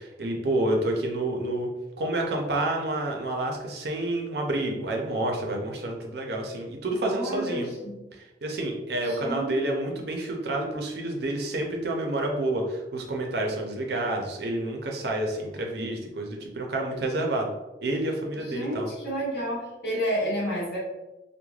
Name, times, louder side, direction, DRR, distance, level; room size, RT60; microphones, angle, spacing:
voice 1, 0.0-1.7 2.0-7.7 8.1-17.5 17.8-18.9, right 1 dB, 65° right, 1 dB, 0.5 m, -29 dB
voice 2, 7.1-8.0 9.0-9.6 18.3-20.8, equal, 60° left, -8 dB, 1.2 m, -30 dB
3.1 x 2.1 x 2.3 m, 1.1 s
head